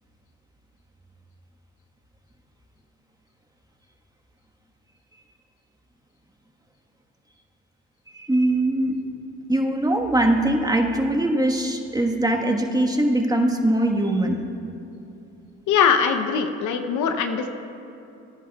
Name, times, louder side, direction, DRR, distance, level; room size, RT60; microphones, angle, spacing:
voice 1, 8.1-8.9 9.5-14.4, right 1 dB, 10° right, 2 dB, 1.4 m, -21 dB
voice 2, 15.7-17.5, left 7 dB, 70° left, 7 dB, 0.8 m, -21 dB
20.5 x 10.0 x 2.4 m, 2.8 s
supercardioid pair, 60°, 31 cm